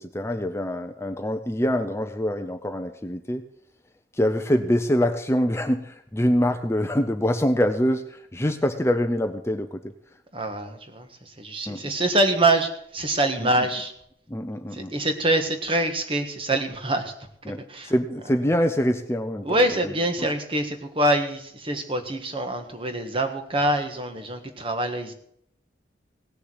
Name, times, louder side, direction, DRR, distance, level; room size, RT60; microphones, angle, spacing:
voice 1, 0.0-3.4 4.1-9.9 11.7-11.8 13.4-13.7 14.3-14.9 17.5-19.5 19.8-19.9, equal, 15° left, 7 dB, 0.6 m, -25 dB
voice 2, 10.3-13.9 14.7-17.1 17.7-17.9 19.4-25.1, right 1 dB, 30° right, 6 dB, 1.5 m, -25 dB
17.5 x 6.9 x 7.9 m, 0.73 s
head